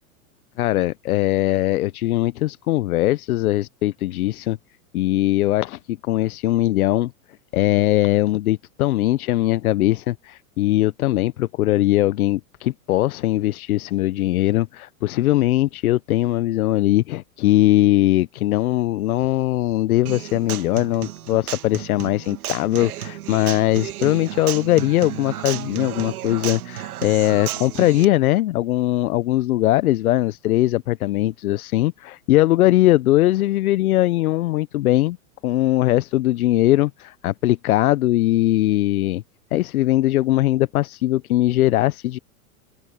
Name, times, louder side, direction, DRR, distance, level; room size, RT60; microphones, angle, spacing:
voice 1, 0.6-4.6 4.9-7.1 7.5-35.2 35.4-39.2 39.5-42.2, left 15 dB, 85° left, 0.8 m, -20 dB
Human voice / Acoustic guitar, 20.1-28.0, right 12 dB, 85° right, 2.1 m, -32 dB
open air
supercardioid pair, 155°, 43 cm